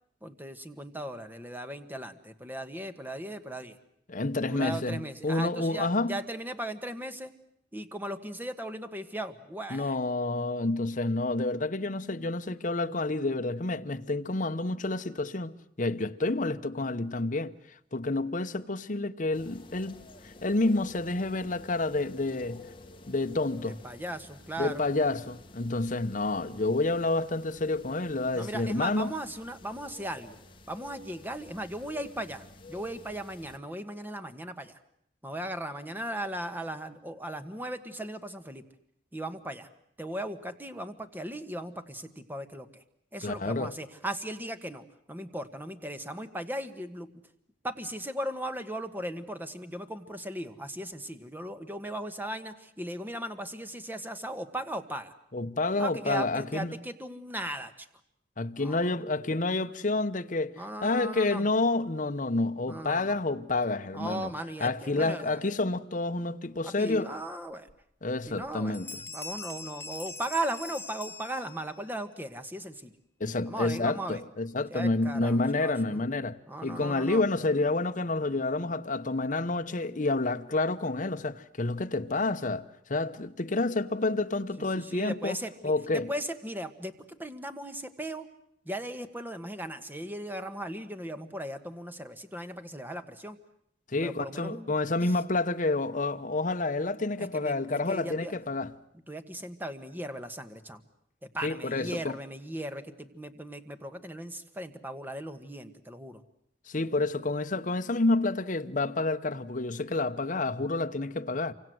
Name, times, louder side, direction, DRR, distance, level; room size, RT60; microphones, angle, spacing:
voice 1, 0.2-3.8 4.4-7.3 7.7-10.0 23.6-24.9 28.3-30.4 30.7-34.8 35.2-38.6 39.1-39.7 40.0-42.8 43.1-47.2 47.6-55.1 55.8-57.9 58.6-58.8 60.6-61.5 62.7-63.2 63.9-65.4 66.6-67.7 68.3-68.8 69.1-72.9 73.5-74.2 74.7-76.1 76.5-77.2 84.6-88.3 88.6-93.4 94.0-94.7 95.0-95.2 97.2-98.3 99.1-100.8 101.2-106.2, right 1 dB, 10° right, 1.5 m, -37 dB
voice 2, 4.1-6.1 9.7-15.5 15.8-17.5 17.9-20.0 20.2-22.6 23.1-23.8 24.6-29.1 43.2-43.7 55.3-56.7 58.4-64.3 64.6-67.1 68.0-68.9 73.2-85.4 85.6-86.1 93.9-98.7 101.4-102.1 106.7-111.5, left 2 dB, 45° left, 1.0 m, -29 dB
sound 1, 19.3-33.6, left 2 dB, 30° left, 1.8 m, -51 dB
Bell, 67.7-67.8 68.2-68.5 68.7-71.9, left 4 dB, 15° left, 1.4 m, -42 dB
27.5 x 25.0 x 7.8 m
head